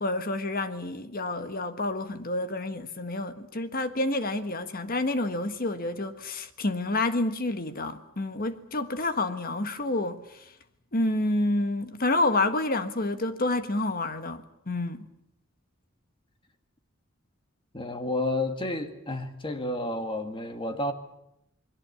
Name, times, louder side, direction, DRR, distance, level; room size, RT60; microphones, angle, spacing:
voice 1, 0.0-10.2 10.9-15.1, left 2 dB, 45° left, 1.5 m, -29 dB
voice 2, 17.7-20.9, left 2 dB, 25° left, 2.1 m, -31 dB
28.5 x 21.5 x 7.1 m
head